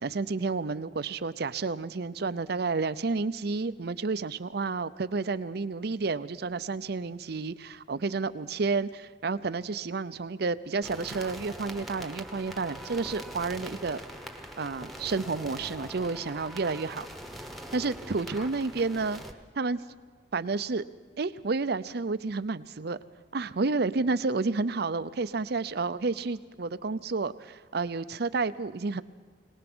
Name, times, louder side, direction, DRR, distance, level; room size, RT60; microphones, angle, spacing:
voice 1, 0.0-14.0 14.6-17.0 17.7-19.2 19.6-19.9 20.3-20.8 21.2-23.0 23.3-29.0, right 4 dB, 60° right, 14 dB, 0.6 m, -30 dB
sound 1, 10.8-19.3, equal, ahead, 1.2 m, -42 dB
22.5 x 19.0 x 6.1 m, 1.4 s
head